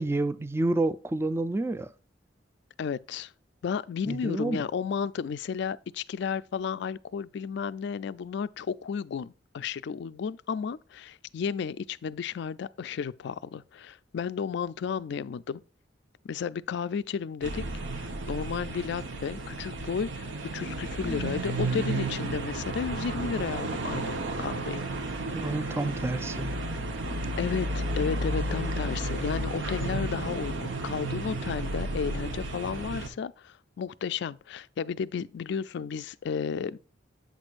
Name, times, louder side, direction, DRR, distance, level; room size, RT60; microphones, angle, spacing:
voice 1, 0.0-1.9 4.1-4.6 25.3-26.6, right 2 dB, 15° right, 0.3 m, -29 dB
voice 2, 2.8-3.3 3.6-15.6 16.2-17.6 17.9-24.9 27.4-36.8, left 6 dB, 65° left, 0.3 m, -33 dB
sound 1, 17.4-33.1, right 2 dB, 80° right, 1.0 m, -32 dB
8.1 x 6.2 x 2.4 m
head